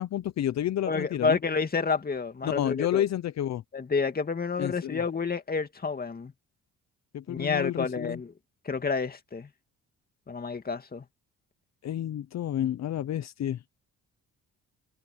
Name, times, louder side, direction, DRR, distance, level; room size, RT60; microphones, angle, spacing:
voice 1, 0.0-1.4 2.4-3.6 4.6-5.0 7.1-8.2 11.8-13.6, left 11 dB, 60° left, 0.9 m, -30 dB
voice 2, 0.9-3.0 3.7-6.3 7.3-8.3 8.7-9.5 10.3-11.0, left 5 dB, 30° left, 2.4 m, -29 dB
open air
cardioid pair, 90°, 30 cm